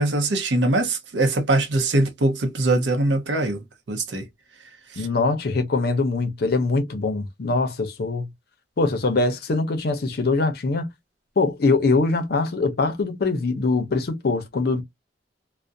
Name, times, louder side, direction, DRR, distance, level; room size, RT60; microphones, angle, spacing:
voice 1, 0.0-4.3 4.9-5.1, right 2 dB, 85° right, 0.6 m, -22 dB
voice 2, 5.0-8.3 8.8-10.9 11.4-14.8, left 3 dB, 60° left, 0.6 m, -23 dB
2.3 x 2.0 x 2.5 m
head